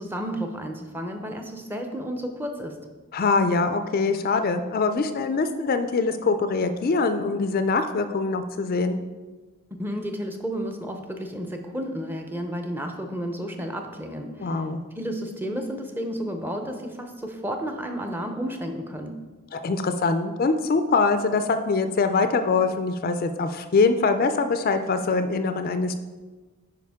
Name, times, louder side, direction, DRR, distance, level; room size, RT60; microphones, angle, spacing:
voice 1, 0.0-2.8 9.8-14.7 14.9-19.2, equal, 10° right, 4 dB, 0.6 m, -32 dB
voice 2, 3.1-9.0 14.4-14.8 19.5-25.9, left 4 dB, 40° left, 8 dB, 0.4 m, -23 dB
9.3 x 5.0 x 3.5 m, 1.3 s
head